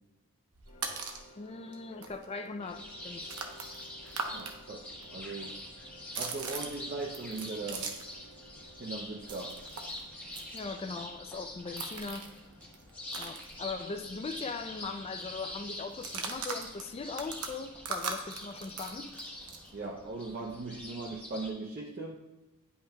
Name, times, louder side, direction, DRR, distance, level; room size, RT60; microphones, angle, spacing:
sound 1, 0.5-1.3 1.7-1.8 2.0-4.5 4.8-8.2 8.5-14.1 14.4-14.5 14.8-15.1 15.9-19.7, right 5 dB, 80° right, 0.9 m, -41 dB
sound 2, 0.7-19.7, equal, 60° left, 1.7 m, -59 dB
voice 1, 1.4-3.3 10.5-12.3 13.2-19.1, left 4 dB, 25° left, 0.4 m, -40 dB
sound 3, 2.6-21.5, left 1 dB, 5° left, 1.1 m, -45 dB
voice 2, 4.3-5.6 6.2-8.0 8.8-9.7 19.7-22.2, right 3 dB, 40° right, 0.6 m, -39 dB
10.0 x 5.5 x 2.2 m
head